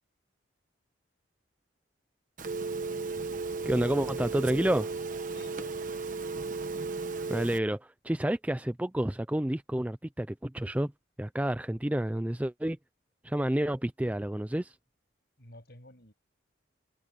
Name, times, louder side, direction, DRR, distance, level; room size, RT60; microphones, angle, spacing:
Telephone, 2.4-7.6, right 4 dB, 40° right, 1.2 m, -35 dB
voice 1, 3.7-4.9 7.3-10.9 11.2-12.8 13.2-14.7, right 1 dB, 5° right, 0.4 m, -29 dB
voice 2, 5.3-6.0 15.4-16.1, left 1 dB, 55° left, 7.5 m, -52 dB
head